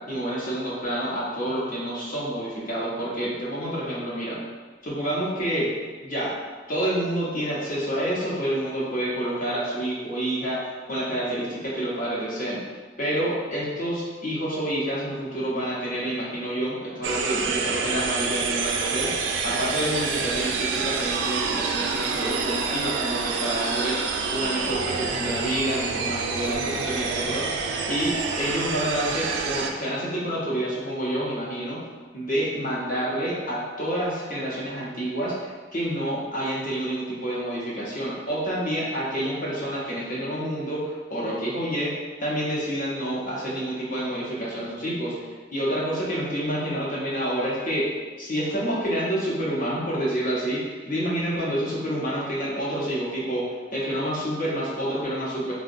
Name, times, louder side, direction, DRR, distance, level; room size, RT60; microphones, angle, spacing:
voice 1, 0.1-4.4 4.8-5.7 6.0-6.3 6.7-12.6 13.0-24.0 24.3-27.5 27.9-31.8 32.1-47.9 48.2-55.5, right 1 dB, 50° left, -6 dB, 0.8 m, -28 dB
sound 1, 17.0-29.7, right 4 dB, 90° right, 0.3 m, -27 dB
3.7 x 2.1 x 2.5 m, 1.4 s
head